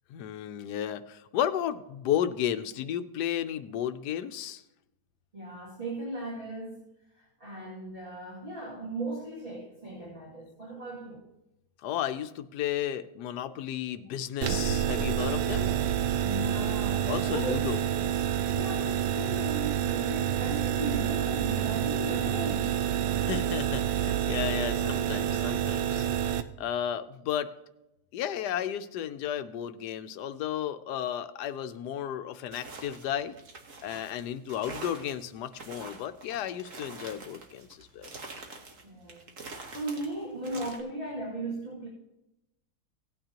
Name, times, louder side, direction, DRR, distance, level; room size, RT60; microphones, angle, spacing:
voice 1, 0.1-4.6 11.8-15.7 17.1-17.8 23.2-26.1 26.6-27.5 28.1-33.4 33.8-38.1, left 10 dB, 80° left, 11 dB, 1.2 m, -33 dB
voice 2, 5.3-6.8 7.1-11.3 16.2-17.7 18.5-22.8 38.8-39.3 39.7-41.9, right 2 dB, 30° right, -7 dB, 2.5 m, -37 dB
sound 1, 14.4-26.4, right 9 dB, 85° right, 1.2 m, -28 dB
sound 2, 32.5-40.8, right 3 dB, 50° right, 1.6 m, -45 dB
17.0 x 9.1 x 2.9 m, 0.92 s
omnidirectional pair, 1.8 m